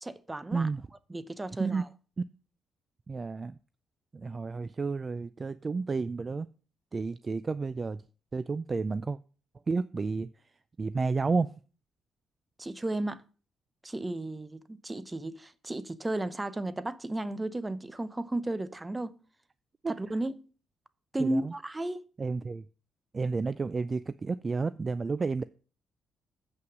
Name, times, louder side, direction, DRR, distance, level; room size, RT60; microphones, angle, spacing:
voice 1, 0.0-0.7 1.1-1.9 12.6-13.2 13.8-19.2 19.9-20.4 21.1-22.0, right 1 dB, 15° right, 0.7 m, -34 dB
voice 2, 0.5-0.8 1.6-1.8 3.1-3.6 4.1-6.5 6.9-8.0 8.3-9.2 9.7-10.3 10.8-11.5 19.8-19.9 21.2-21.5 22.2-22.7 23.1-25.4, right 4 dB, 30° right, 0.3 m, -31 dB
7.9 x 5.8 x 6.0 m
cardioid pair, 90°, 0 cm